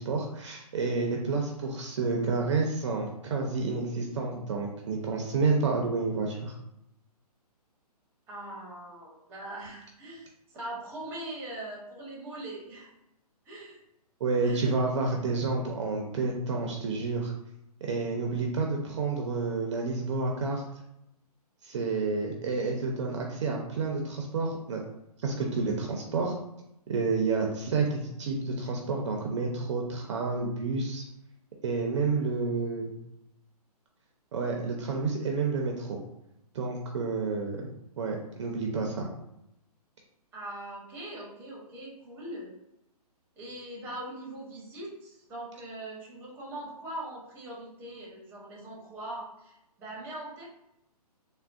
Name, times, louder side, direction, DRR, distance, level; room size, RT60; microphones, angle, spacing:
voice 1, 0.0-6.5 14.2-17.3 17.8-20.6 21.6-24.8 25.2-26.4 26.9-31.0 31.6-32.9 34.3-36.0 36.5-37.7 38.0-39.1, right 4 dB, 45° right, 1 dB, 0.5 m, -29 dB
voice 2, 8.3-12.9 13.5-13.8 14.4-14.7 40.3-42.6 43.4-50.4, right 1 dB, 10° right, -4 dB, 0.7 m, -41 dB
3.5 x 2.1 x 2.3 m, 0.84 s
hypercardioid pair, 150°, 20 cm